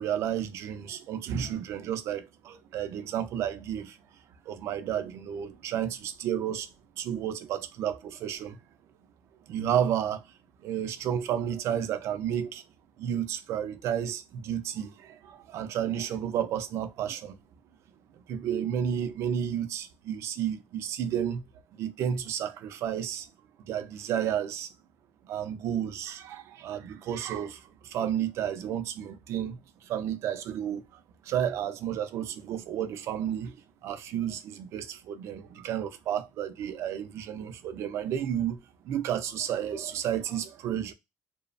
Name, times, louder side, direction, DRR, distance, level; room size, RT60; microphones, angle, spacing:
voice 1, 0.0-3.9 4.5-6.7 7.0-8.6 9.5-10.2 10.6-12.6 13.0-17.3 18.3-21.4 21.8-23.2 23.7-24.7 25.3-27.6 27.9-29.6 29.9-30.8 31.3-33.6 33.8-38.6 38.9-40.9, right 9 dB, 60° right, 0.4 m, -31 dB
2.8 x 2.0 x 2.4 m
cardioid pair, 160°, 5 cm